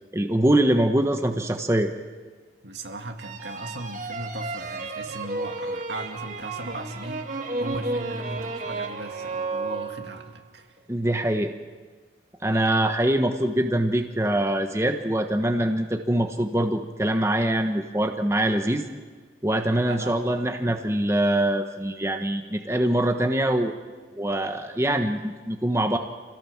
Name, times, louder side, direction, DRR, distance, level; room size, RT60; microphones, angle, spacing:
voice 1, 0.1-1.9 10.9-11.5 12.4-18.8 19.4-23.7 24.2-26.0, right 1 dB, 15° right, 5 dB, 1.1 m, -23 dB
voice 2, 2.6-7.3 7.6-10.7 19.9-20.3, right 1 dB, 80° right, 4 dB, 2.2 m, -37 dB
sound 1, 3.2-10.4, right 3 dB, 45° right, 2.0 m, -32 dB
27.0 x 17.0 x 7.3 m, 1.4 s
head